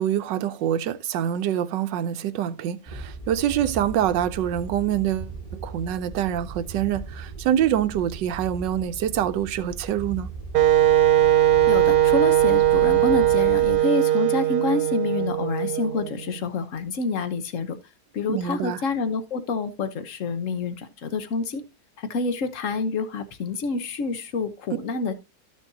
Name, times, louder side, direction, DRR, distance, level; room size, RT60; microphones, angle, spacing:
voice 1, 0.0-10.3 18.3-18.8, right 10 dB, 85° right, 1.3 m, -25 dB
sound 1, 2.9-13.8, right 3 dB, 20° left, 1.6 m, -38 dB
Wind instrument woodwind instrument, 10.5-16.4, right 12 dB, 70° right, 1.2 m, -19 dB
voice 2, 11.7-17.8 18.1-21.6 22.0-25.1, left 4 dB, 50° left, 1.2 m, -28 dB
13.5 x 6.3 x 2.7 m
omnidirectional pair, 1.9 m